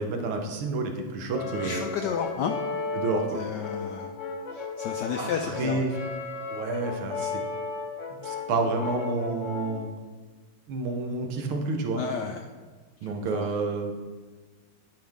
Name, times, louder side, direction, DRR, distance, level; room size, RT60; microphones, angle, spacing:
voice 1, 0.0-1.9 2.9-3.4 5.2-6.0 6.5-7.4 8.2-9.9 10.7-12.0 13.0-13.9, right 3 dB, 80° right, 3 dB, 1.8 m, -29 dB
Brass instrument, 1.3-9.9, left 4 dB, 50° left, 0.9 m, -34 dB
voice 2, 1.6-2.5 3.3-4.1 4.5-5.8 12.0-12.4 13.0-13.5, left 7 dB, 80° left, 4 dB, 0.9 m, -32 dB
11.5 x 5.8 x 3.5 m, 1.4 s
omnidirectional pair, 2.4 m